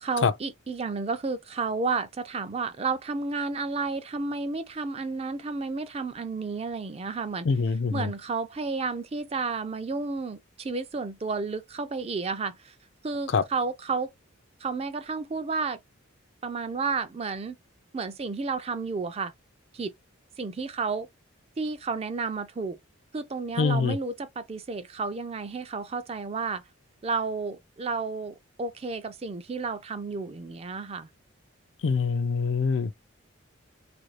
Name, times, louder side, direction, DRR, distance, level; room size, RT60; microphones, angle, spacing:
voice 1, 0.0-7.5 7.9-12.7 13.0-14.1 14.6-15.8 16.4-17.6 17.9-19.3 19.7-19.9 20.4-21.1 21.6-22.8 23.1-26.6 27.0-31.1, right 4 dB, 30° right, 0.4 m, -31 dB
voice 2, 7.4-8.1 13.3-13.4 23.6-24.0 31.8-33.0, left 5 dB, 60° left, 0.4 m, -24 dB
3.1 x 2.5 x 3.2 m
head